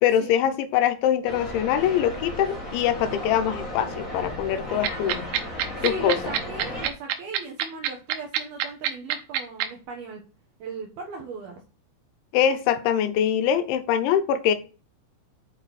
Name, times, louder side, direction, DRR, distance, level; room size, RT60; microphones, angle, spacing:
voice 1, 0.0-5.3 5.8-6.2 12.3-14.6, left 9 dB, 75° left, 10 dB, 3.2 m, -23 dB
sound 1, 1.2-6.9, left 1 dB, 35° left, 1.3 m, -35 dB
sound 2, 4.8-9.6, right 10 dB, 85° right, 3.5 m, -24 dB
voice 2, 5.8-10.2 10.6-11.6, right 4 dB, 65° right, 1 dB, 2.6 m, -38 dB
9.0 x 5.8 x 4.3 m, 0.34 s
omnidirectional pair, 5.7 m